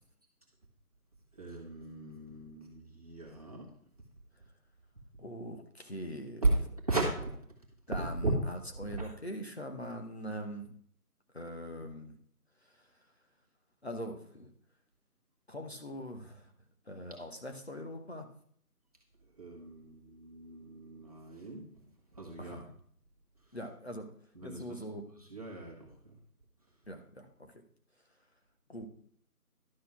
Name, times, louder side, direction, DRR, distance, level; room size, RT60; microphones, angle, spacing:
voice 1, 1.3-3.8 6.4-7.4 8.0-9.1 19.2-22.7 23.4-23.6 24.3-26.2 26.6-26.9, right 2 dB, 25° right, -3 dB, 1.6 m, -36 dB
voice 2, 5.2-6.4 7.9-8.3 8.8-10.7 11.3-12.1 12.6-12.9 13.8-14.5 15.5-16.5 16.9-18.3 22.4-22.6 23.5-24.1 24.4-25.0 26.9-27.5 28.7-28.9, equal, 45° left, 3 dB, 1.1 m, -42 dB
12.0 x 4.2 x 5.7 m, 0.62 s
figure-of-eight pair, 175°, 45 cm